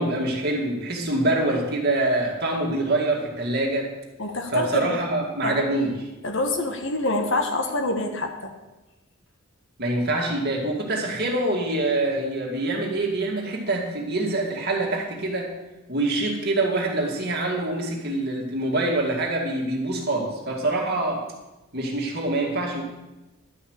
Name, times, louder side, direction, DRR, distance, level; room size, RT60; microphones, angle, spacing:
voice 1, 0.0-3.9 4.5-6.0 9.8-15.5 15.9-21.2 21.7-22.8, right 2 dB, 50° right, 0 dB, 2.2 m, -25 dB
voice 2, 4.2-4.9 5.4-5.7 6.2-8.5, left 2 dB, 60° left, 4 dB, 1.5 m, -26 dB
11.5 x 5.7 x 8.0 m, 1.1 s
head